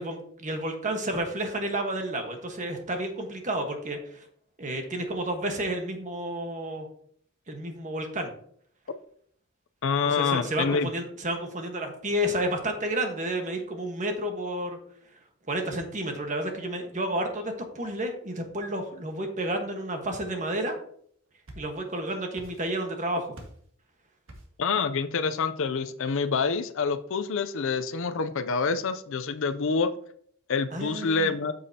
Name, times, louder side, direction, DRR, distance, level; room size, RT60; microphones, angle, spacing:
voice 1, 0.0-4.3 4.6-6.9 7.5-8.3 10.0-14.8 15.5-20.8 21.6-23.3 30.7-31.3, right 1 dB, 35° right, 1.3 m, -31 dB
voice 2, 9.8-10.9 24.6-29.9 30.5-31.5, left 5 dB, 60° left, 0.5 m, -27 dB
sound 1, 21.1-22.0 22.3-23.0 23.3-23.7 24.3-24.7, right 1 dB, 65° right, 1.7 m, -48 dB
8.2 x 7.0 x 2.8 m
head